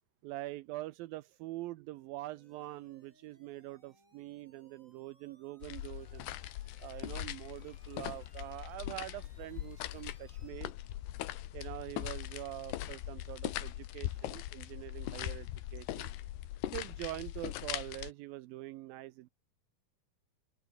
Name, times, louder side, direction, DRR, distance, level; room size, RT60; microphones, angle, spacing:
voice 1, 0.2-6.3 6.8-10.7 11.5-16.1 16.7-19.3, right 17 dB, 85° right, 2.1 m, -44 dB
sound 1, 2.3-10.7, right 2 dB, 15° right, 7.4 m, -68 dB
sound 2, 5.6-18.1, left 14 dB, 75° left, 3.2 m, -41 dB
open air
omnidirectional pair, 5.0 m